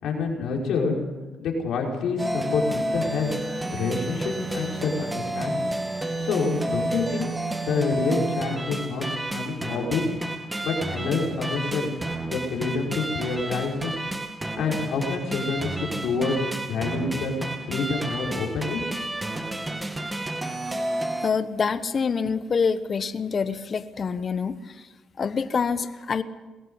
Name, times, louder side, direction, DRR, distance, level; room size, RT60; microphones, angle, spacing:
voice 1, 0.0-1.0 1.4-3.3 3.7-5.7 6.2-7.3 7.6-10.1 10.6-11.9 12.2-14.0 14.6-16.4 16.6-17.3 17.7-18.8, left 4 dB, 75° left, 0 dB, 5.3 m, -27 dB
sound 1, 2.2-21.3, right 2 dB, 15° right, 1.9 m, -31 dB
voice 2, 21.2-24.9 25.2-26.2, left 5 dB, 45° left, 12 dB, 1.1 m, -26 dB
21.0 x 16.0 x 8.1 m, 1.2 s
cardioid pair, 90°, 0 cm